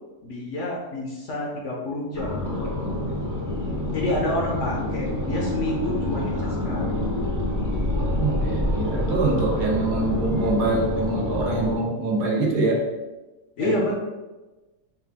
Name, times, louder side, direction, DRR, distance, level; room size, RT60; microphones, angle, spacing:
voice 1, 0.2-2.9 3.9-7.0 13.6-13.9, left 1 dB, 60° left, -3 dB, 0.9 m, -29 dB
Space Alien Ambience, 2.1-11.8, left 1 dB, 25° right, 0.4 m, -27 dB
voice 2, 8.2-12.8 13.6-13.8, right 2 dB, 80° right, -2 dB, 1.4 m, -24 dB
4.6 x 2.4 x 3.4 m, 1.2 s
omnidirectional pair, 1.7 m